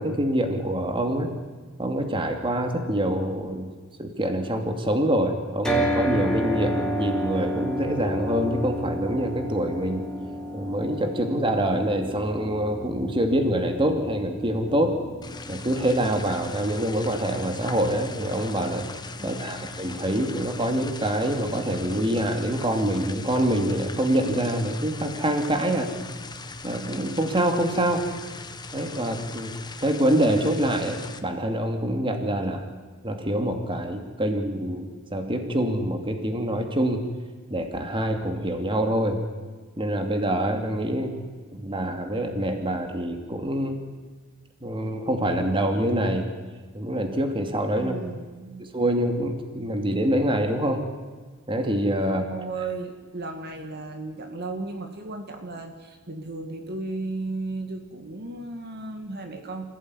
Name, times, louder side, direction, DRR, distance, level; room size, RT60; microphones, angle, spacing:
voice 1, 0.0-1.3 1.8-3.7 4.0-10.1 10.5-15.0 15.5-18.9 19.2-25.9 26.6-28.1 28.7-29.5 29.8-32.7 33.0-37.0 37.5-39.2 39.8-41.2 41.5-43.8 44.6-46.3 46.7-47.9 48.6-50.8 51.5-52.2, right 1 dB, 25° right, 5 dB, 2.6 m, -25 dB
sound 1, 5.6-19.8, equal, 5° left, 3.4 m, -32 dB
sound 2, 15.2-31.2, left 3 dB, 20° left, 1.4 m, -39 dB
voice 2, 19.2-19.7 47.8-48.7 52.1-59.7, right 3 dB, 50° right, 5 dB, 2.3 m, -35 dB
26.0 x 16.5 x 9.9 m, 1.4 s
head